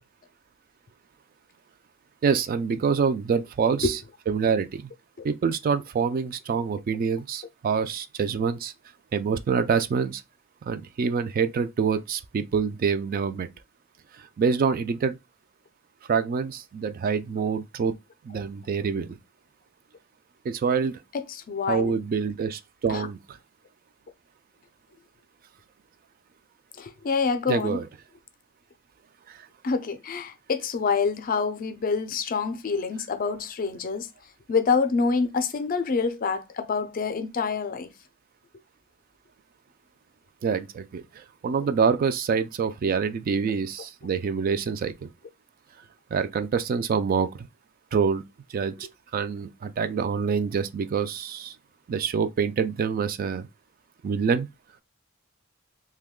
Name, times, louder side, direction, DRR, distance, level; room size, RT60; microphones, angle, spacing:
voice 1, 2.2-4.0 4.3-4.9 5.2-8.7 9.1-10.2 10.7-13.5 14.1-15.2 16.1-17.9 18.2-19.2 20.4-21.0 21.7-23.4 27.5-27.9 29.3-29.5 40.4-45.1 46.1-47.5 47.9-48.2 48.5-48.7 49.1-51.6 51.9-53.5 54.0-54.5, right 6 dB, 45° right, 0.3 m, -26 dB
voice 2, 21.5-21.9 22.9-23.0 26.8-27.8 29.6-34.1 34.5-37.9, left 5 dB, 45° left, 0.4 m, -26 dB
3.0 x 2.2 x 3.5 m
head